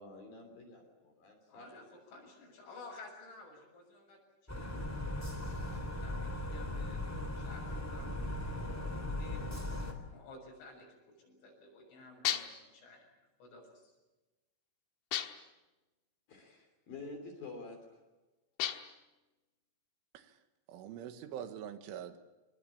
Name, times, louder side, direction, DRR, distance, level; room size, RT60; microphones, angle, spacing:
voice 1, 0.0-1.7 16.3-18.0, left 3 dB, 50° left, 3 dB, 4.6 m, -49 dB
voice 2, 1.5-7.0 7.3-9.4 10.1-13.1 13.4-13.9, left 3 dB, 90° left, 0 dB, 9.5 m, -54 dB
sound 1, 4.5-9.9, left 1 dB, 5° left, 2.5 m, -38 dB
sound 2, 12.3-12.7 15.1-15.6 18.6-19.1, left 11 dB, 70° left, 2.8 m, -35 dB
voice 3, 20.7-22.2, right 9 dB, 90° right, 9 dB, 4.0 m, -44 dB
26.0 x 21.5 x 8.7 m, 1.1 s
omnidirectional pair, 5.6 m